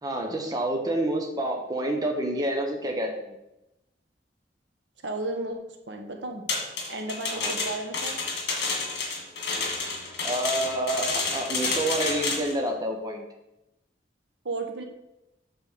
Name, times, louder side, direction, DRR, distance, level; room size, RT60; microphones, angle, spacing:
voice 1, 0.0-3.4 7.3-7.5 10.2-13.3, right 1 dB, 20° right, 1 dB, 1.0 m, -28 dB
voice 2, 5.0-6.4 6.9-8.2 14.4-14.8, right 2 dB, 80° right, 3 dB, 1.2 m, -33 dB
sound 1, 6.5-12.5, left 4 dB, 65° left, 1.9 m, -30 dB
8.2 x 3.4 x 6.6 m, 0.91 s
head